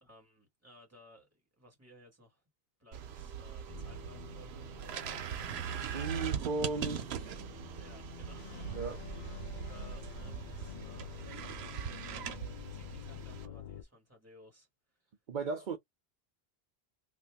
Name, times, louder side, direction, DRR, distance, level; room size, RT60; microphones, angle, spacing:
voice 1, 0.0-1.3 1.6-2.4 2.8-4.7 6.0-6.6 7.8-8.8 9.7-14.7 14.9-15.1, equal, 15° right, 1.8 m, -59 dB
sound 1, 2.9-13.5, right 8 dB, 85° right, 0.9 m, -41 dB
sound 2, 3.7-13.8, left 8 dB, 55° left, 0.7 m, -48 dB
voice 2, 5.8-7.3 8.7-9.0 15.3-15.8, right 4 dB, 55° right, 0.8 m, -36 dB
2.7 x 2.5 x 3.4 m
omnidirectional pair, 1.0 m